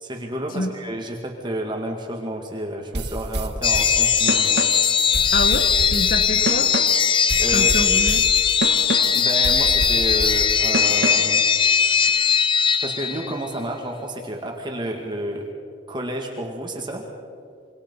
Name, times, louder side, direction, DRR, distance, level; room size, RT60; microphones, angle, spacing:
voice 1, 0.0-4.6 7.4-7.7 9.1-11.4 12.8-15.5 15.9-17.1, right 1 dB, 25° right, 1 dB, 2.2 m, -30 dB
sound 1, 2.9-11.4, right 2 dB, 65° right, 1.4 m, -29 dB
sound 2, 3.6-13.5, left 7 dB, 30° left, 0.9 m, -19 dB
voice 2, 5.3-6.7 7.5-8.3, left 2 dB, 50° left, 8 dB, 1.1 m, -27 dB
26.5 x 24.5 x 5.6 m, 2.4 s
head